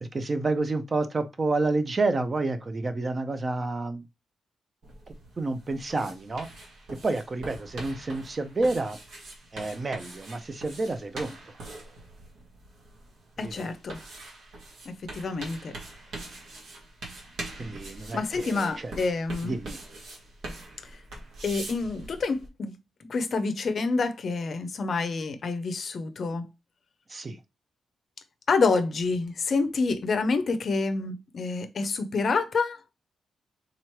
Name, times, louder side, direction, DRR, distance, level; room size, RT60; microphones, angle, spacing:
voice 1, 0.0-4.0 5.4-6.5 7.0-9.0 9.5-11.5 13.4-13.7 17.6-18.9 19.4-19.8 27.1-27.4, right 3 dB, 25° right, 0.4 m, -29 dB
sound 1, 4.8-22.5, right 2 dB, 85° right, 1.5 m, -43 dB
voice 2, 13.4-14.0 15.1-15.7 18.1-19.5 21.4-22.7 23.1-26.5 28.5-32.8, left 4 dB, 45° left, 0.5 m, -27 dB
3.7 x 3.1 x 4.4 m
wide cardioid pair, 170°, 0 cm